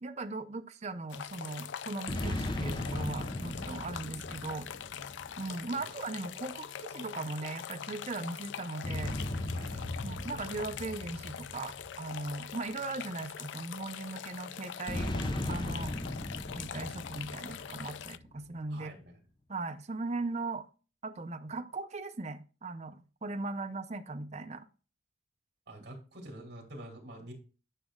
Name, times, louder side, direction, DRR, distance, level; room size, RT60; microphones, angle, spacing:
voice 1, 0.0-4.7 5.4-9.2 10.0-15.1 15.5-15.9 16.6-18.9 19.5-20.7 21.0-24.7, right 3 dB, 40° right, 6 dB, 0.6 m, -38 dB
sound 1, 1.1-18.2, left 8 dB, 90° left, 0.4 m, -43 dB
sound 2, 2.1-5.7 8.8-12.5 14.9-18.3, left 1 dB, 25° left, 0.8 m, -37 dB
voice 2, 9.5-10.1 18.7-19.2 25.7-27.3, right 1 dB, 60° right, 0 dB, 2.7 m, -47 dB
10.0 x 6.1 x 2.3 m, 0.34 s
head